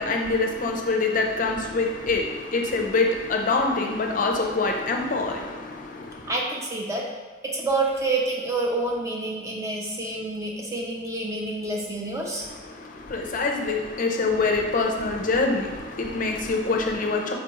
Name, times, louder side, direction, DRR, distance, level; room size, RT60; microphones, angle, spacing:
voice 1, 0.0-6.3 12.4-17.3, left 3 dB, 45° left, 2 dB, 0.5 m, -25 dB
voice 2, 6.3-7.0 7.4-12.5, right 2 dB, 15° right, -2 dB, 0.6 m, -28 dB
4.4 x 3.7 x 2.9 m, 1.5 s
head